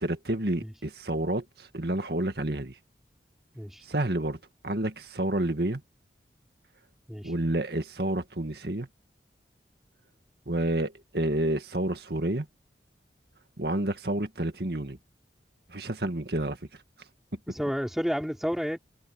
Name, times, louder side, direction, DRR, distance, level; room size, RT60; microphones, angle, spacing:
voice 1, 0.0-2.7 3.9-4.4 4.6-5.8 7.2-8.9 10.5-12.5 13.6-15.0 15.7-16.6, right 1 dB, 65° right, 2.0 m, -29 dB
voice 2, 3.5-3.8 7.1-7.3 17.5-18.8, equal, ahead, 4.6 m, -31 dB
head